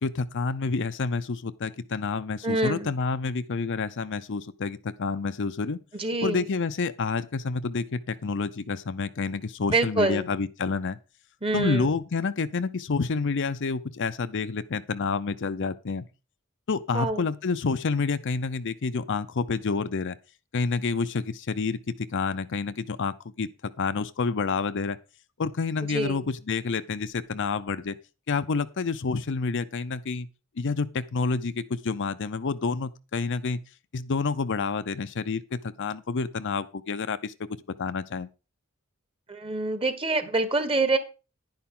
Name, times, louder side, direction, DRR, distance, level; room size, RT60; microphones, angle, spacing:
voice 1, 0.0-5.8 6.2-11.0 11.5-16.1 16.7-20.2 20.5-25.0 25.4-28.0 28.3-30.3 30.6-33.6 33.9-37.3 37.8-38.3, left 4 dB, 60° left, 0.6 m, -29 dB
voice 2, 2.4-3.0 5.9-6.5 9.7-10.3 11.4-11.9 16.9-17.3 25.9-26.2 39.3-41.0, right 2 dB, 25° right, 1.4 m, -26 dB
10.5 x 10.5 x 3.8 m
head